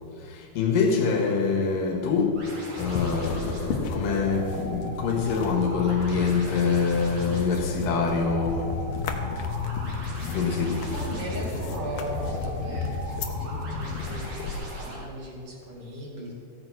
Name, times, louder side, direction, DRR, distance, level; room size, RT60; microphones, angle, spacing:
voice 1, 0.2-8.9 10.3-10.9, left 5 dB, 85° left, 3.3 m, -25 dB
sound 1, 2.4-15.0, right 1 dB, 85° right, 4.9 m, -39 dB
sound 2, 2.8-14.6, left 5 dB, 65° left, 1.9 m, -33 dB
voice 2, 10.9-16.3, equal, 45° right, 3.0 m, -38 dB
15.0 x 8.9 x 6.1 m
omnidirectional pair, 3.9 m